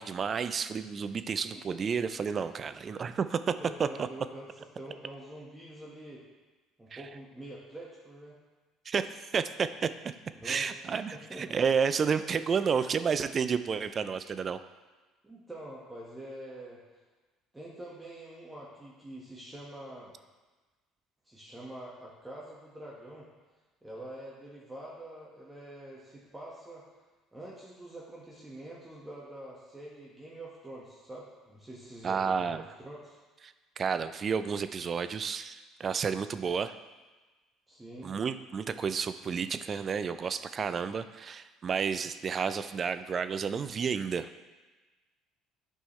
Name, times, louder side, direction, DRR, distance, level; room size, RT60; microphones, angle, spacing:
voice 1, 0.0-3.5 3.8-4.1 6.9-7.0 8.9-9.9 10.4-14.6 32.0-32.6 33.8-36.7 38.0-44.4, right 6 dB, 40° right, 12 dB, 0.4 m, -31 dB
voice 2, 3.6-4.5 4.8-6.2 6.8-8.3 10.3-10.6 11.1-11.4 15.2-16.8 17.5-20.1 21.2-23.3 23.8-26.8 27.3-33.2 37.7-38.1, right 1 dB, 15° right, -5 dB, 1.5 m, -45 dB
8.4 x 5.4 x 3.2 m, 1.3 s
hypercardioid pair, 70°, 0 cm